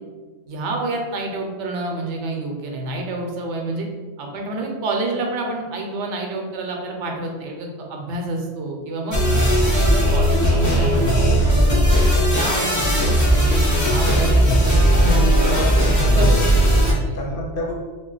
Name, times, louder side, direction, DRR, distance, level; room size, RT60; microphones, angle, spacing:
voice 1, 0.5-3.9 4.2-9.2 9.7-12.0 12.3-15.5 16.1-16.6 16.8-17.4, right 2 dB, 90° right, 1 dB, 0.9 m, -28 dB
sound 1, 9.1-16.9, equal, 25° left, 0.4 m, -17 dB
voice 2, 14.0-14.5 15.1-17.7, left 1 dB, 60° left, -1 dB, 0.6 m, -29 dB
2.4 x 2.1 x 3.8 m, 1.4 s
omnidirectional pair, 1.2 m